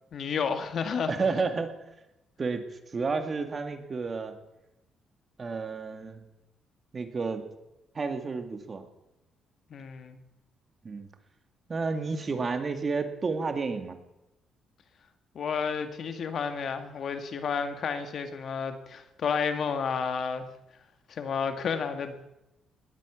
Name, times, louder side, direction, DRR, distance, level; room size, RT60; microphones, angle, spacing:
voice 1, 0.1-1.1 9.7-10.2 15.4-20.5 21.1-22.2, left 6 dB, 60° left, 8 dB, 2.0 m, -31 dB
voice 2, 1.1-1.8 2.4-2.7 2.9-4.4 5.4-6.2 6.9-7.5 7.9-8.9 10.8-11.1 11.7-14.0, right 4 dB, 35° right, 7 dB, 2.1 m, -31 dB
19.0 x 8.6 x 8.4 m, 0.91 s
cardioid pair, 90°, 0 cm